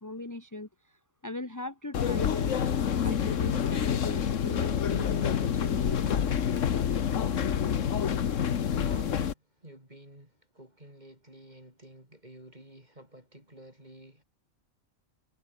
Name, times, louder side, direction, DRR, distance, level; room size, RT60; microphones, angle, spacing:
voice 1, 0.0-6.2, left 2 dB, 15° left, 1.6 m, -39 dB
sound 1, 1.9-9.3, left 8 dB, 65° left, 1.4 m, -27 dB
voice 2, 8.6-14.2, right 1 dB, 30° right, 8.3 m, -51 dB
omnidirectional pair, 1.4 m